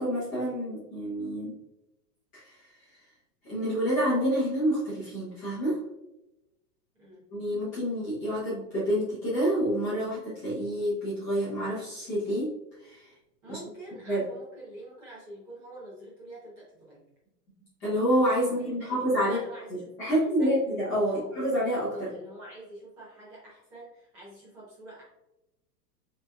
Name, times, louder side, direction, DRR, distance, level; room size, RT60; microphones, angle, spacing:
voice 1, 0.0-1.6 2.3-3.0 3.4-5.8 7.3-12.5 12.8-13.1 13.5-13.6 14.1-14.2 17.8-19.4 20.0-22.1, equal, 15° left, -11 dB, 1.0 m, -28 dB
voice 2, 13.4-17.1 18.6-20.5 21.0-21.3 21.9-25.0, right 1 dB, 15° right, -8 dB, 0.9 m, -45 dB
5.7 x 3.2 x 2.3 m, 0.93 s
supercardioid pair, 180°, 49 cm